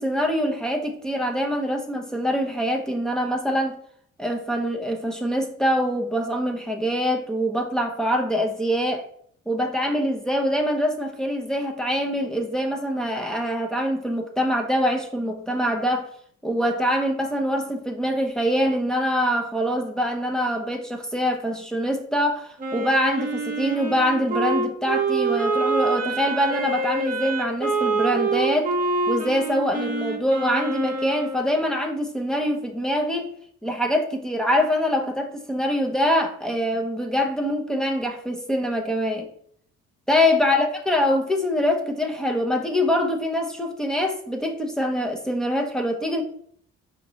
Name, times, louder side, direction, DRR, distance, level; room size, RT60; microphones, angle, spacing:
voice 1, 0.0-3.8 4.2-9.0 9.5-16.1 16.4-28.7 29.1-33.3 33.6-39.3 40.1-46.2, equal, ahead, 0.7 m, -24 dB
Wind instrument woodwind instrument, 22.6-31.5, right 3 dB, 25° right, 0.9 m, -26 dB
5.0 x 3.0 x 2.8 m
cardioid pair, 90°, 30 cm